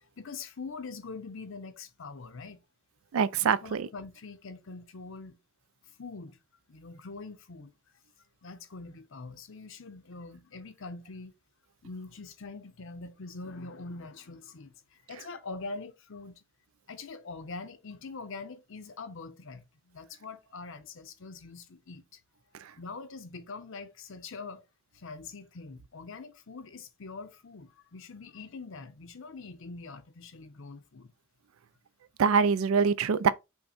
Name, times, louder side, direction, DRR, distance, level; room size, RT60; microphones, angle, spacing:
voice 1, 0.2-2.6 3.6-5.4 6.0-6.4 6.7-7.7 8.4-11.3 11.8-16.4 16.9-22.2 22.8-24.6 24.9-31.1, left 3 dB, 65° left, 0.7 m, -43 dB
voice 2, 3.1-3.9 32.2-33.3, right 6 dB, 75° right, 0.4 m, -24 dB
5.6 x 2.2 x 4.2 m
head